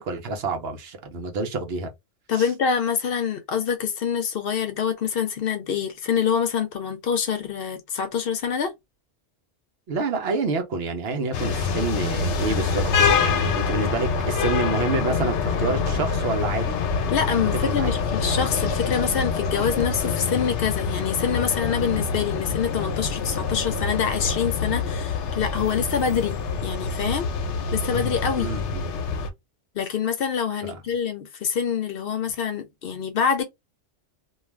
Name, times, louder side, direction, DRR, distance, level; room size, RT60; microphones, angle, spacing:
voice 1, 0.0-1.9 2.3-2.5 9.9-16.8 17.6-17.9 28.4-28.9 30.6-30.8, right 3 dB, 65° right, 0.9 m, -28 dB
voice 2, 2.3-8.7 17.1-27.3 27.7-28.5 29.8-33.4, left 7 dB, 65° left, 0.7 m, -26 dB
sound 1, 11.3-29.3, left 5 dB, 90° left, 0.9 m, -26 dB
2.4 x 2.3 x 3.1 m
omnidirectional pair, 1.2 m